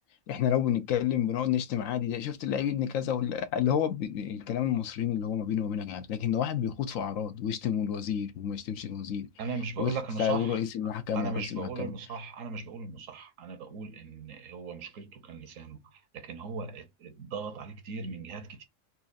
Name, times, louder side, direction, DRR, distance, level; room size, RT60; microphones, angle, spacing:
voice 1, 0.3-9.3 9.8-11.9, left 9 dB, 90° left, 1.1 m, -30 dB
voice 2, 9.4-10.6 11.1-18.6, right 5 dB, 80° right, 1.2 m, -38 dB
4.3 x 2.4 x 2.5 m
omnidirectional pair, 1.3 m